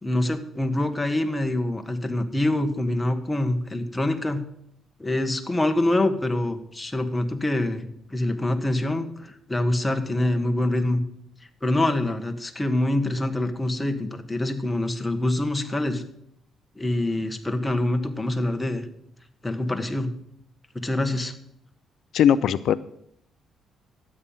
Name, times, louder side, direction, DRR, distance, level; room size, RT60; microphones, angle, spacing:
voice 1, 0.0-4.4 5.0-11.0 11.6-16.0 16.7-18.8 19.4-20.1 20.7-21.3, left 1 dB, 15° left, 6 dB, 1.5 m, -25 dB
voice 2, 22.1-22.7, left 9 dB, 75° left, 16 dB, 0.5 m, -19 dB
12.5 x 8.7 x 5.6 m, 0.71 s
cardioid pair, 90°, 0 cm